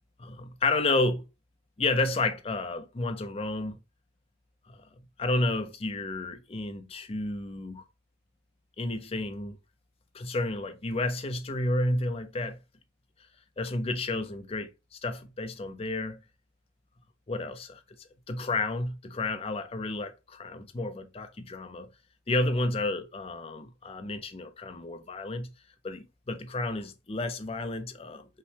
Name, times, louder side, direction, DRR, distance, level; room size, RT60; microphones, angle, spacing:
voice 1, 0.2-1.3 1.8-3.8 4.7-4.8 5.2-7.8 8.8-9.6 10.1-12.6 13.6-16.2 17.3-17.8 18.3-21.9 22.3-25.5 25.8-28.3, left 2 dB, 30° left, 0.4 m, -31 dB
5.5 x 2.1 x 3.3 m
head